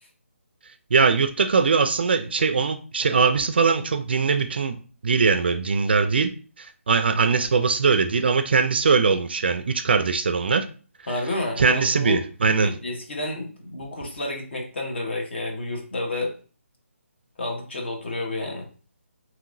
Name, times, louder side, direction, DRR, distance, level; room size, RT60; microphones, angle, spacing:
voice 1, 0.9-4.8 5.0-6.3 6.6-10.7 11.6-12.7, right 5 dB, 45° right, 10 dB, 0.3 m, -21 dB
voice 2, 11.1-12.3 12.6-16.3 17.4-18.7, left 2 dB, 50° left, 1 dB, 1.0 m, -30 dB
2.9 x 2.8 x 2.6 m, 0.39 s
hypercardioid pair, 170°, 8 cm